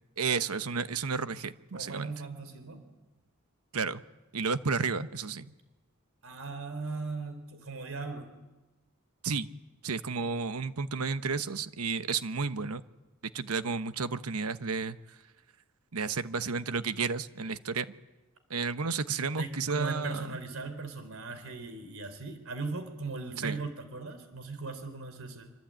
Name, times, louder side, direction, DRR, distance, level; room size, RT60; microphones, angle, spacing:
voice 1, 0.2-2.1 3.7-4.0 4.3-5.5 9.2-9.5 9.8-12.8 13.3-15.0 15.9-17.9 18.5-20.3 23.4-23.6, right 5 dB, 90° right, 12 dB, 1.1 m, -32 dB
voice 2, 1.7-2.9 6.2-8.3 19.3-25.5, right 3 dB, 65° right, 9 dB, 4.1 m, -38 dB
26.5 x 25.0 x 9.0 m, 1.1 s
head